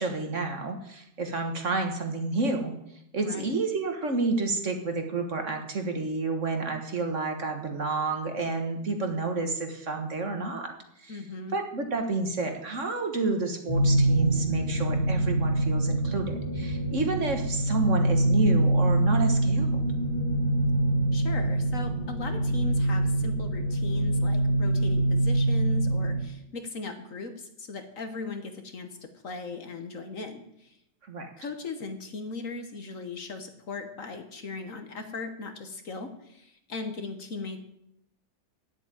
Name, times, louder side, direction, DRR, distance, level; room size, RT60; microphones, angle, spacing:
voice 1, 0.0-2.7 3.1-10.7 11.0-11.2 11.5-19.8 31.1-31.3, right 3 dB, 45° right, 5 dB, 1.6 m, -30 dB
voice 2, 3.2-3.6 11.1-11.6 21.1-30.8 31.4-37.6, left 3 dB, 50° left, 7 dB, 1.4 m, -38 dB
sound 1, 13.7-26.2, right 1 dB, 25° left, 2.0 m, -25 dB
9.9 x 8.2 x 8.9 m, 0.76 s
omnidirectional pair, 1.9 m